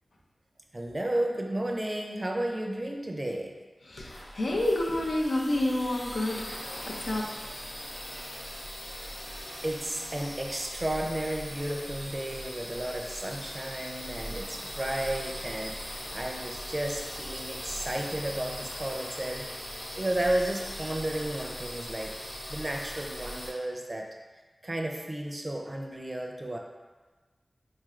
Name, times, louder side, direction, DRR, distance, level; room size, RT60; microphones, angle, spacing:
voice 1, 0.7-3.5 9.6-19.5 20.0-22.1 22.5-24.1 24.6-26.6, right 1 dB, 35° right, 2 dB, 0.5 m, -33 dB
voice 2, 3.8-7.5 9.4-9.5, left 1 dB, 85° left, -2 dB, 0.5 m, -29 dB
sound 1, 4.0-23.5, equal, 50° left, 0.9 m, -40 dB
3.8 x 2.4 x 3.1 m, 1.3 s
wide cardioid pair, 55°, 0 cm